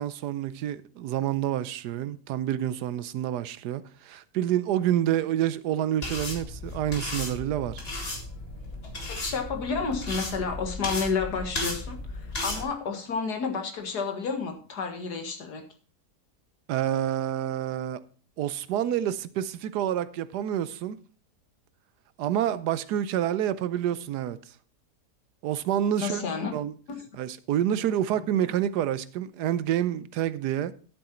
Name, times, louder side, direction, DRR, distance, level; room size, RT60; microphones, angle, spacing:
voice 1, 0.0-7.8 16.7-18.0 18.4-21.0 22.2-24.4 25.4-26.3 26.5-26.7 27.2-30.7, right 11 dB, 80° right, 1.2 m, -28 dB
sound 1, 6.0-12.6, left 2 dB, 35° left, 2.3 m, -35 dB
voice 2, 9.1-15.6 26.0-26.5, left 5 dB, 75° left, 2.2 m, -30 dB
11.5 x 7.8 x 4.3 m
omnidirectional pair, 1.8 m